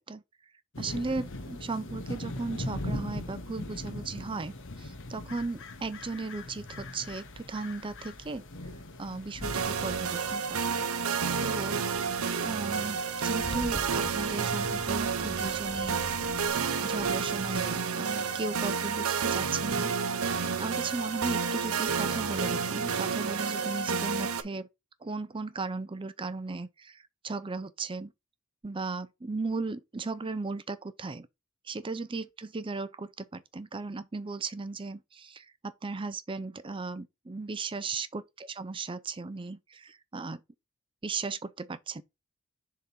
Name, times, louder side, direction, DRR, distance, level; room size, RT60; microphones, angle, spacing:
sound 1, 0.7-17.8, left 1 dB, 60° left, 1.1 m, -42 dB
voice 1, 0.8-8.4 9.0-10.7 11.4-11.9 12.4-16.0 16.8-19.9 20.6-24.7 25.0-28.1 28.6-31.3 31.7-40.4 41.0-42.0, right 3 dB, 25° right, 0.5 m, -36 dB
sound 2, 9.4-24.4, right 5 dB, 80° right, 0.7 m, -30 dB
Car / Engine starting / Idling, 13.0-16.5, equal, ahead, 1.1 m, -43 dB
6.8 x 3.7 x 4.2 m
head